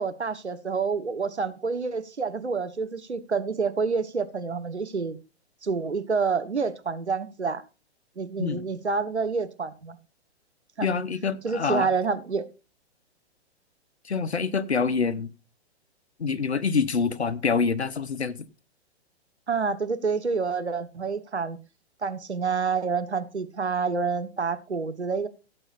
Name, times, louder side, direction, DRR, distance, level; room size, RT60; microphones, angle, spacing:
voice 1, 0.0-5.2 5.6-7.6 8.2-10.0 10.8-10.9 11.4-12.4 19.5-21.6 22.0-25.3, right 5 dB, 80° right, 1.3 m, -28 dB
voice 2, 10.8-11.9 14.0-15.3 16.2-18.4, left 5 dB, 75° left, 1.1 m, -26 dB
16.5 x 7.8 x 2.5 m
figure-of-eight pair, 115°, 33 cm